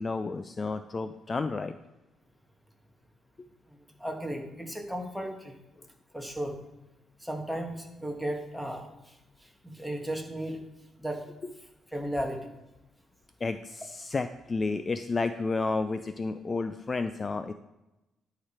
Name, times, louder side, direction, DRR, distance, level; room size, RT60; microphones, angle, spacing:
voice 1, 0.0-1.8 13.4-17.5, left 3 dB, 30° left, 10 dB, 0.4 m, -31 dB
voice 2, 3.7-5.6 6.1-6.6 7.2-10.6 11.0-11.2 11.9-12.5, right 1 dB, ahead, 1 dB, 1.6 m, -35 dB
10.5 x 4.9 x 4.3 m, 0.97 s
cardioid pair, 90°, 0 cm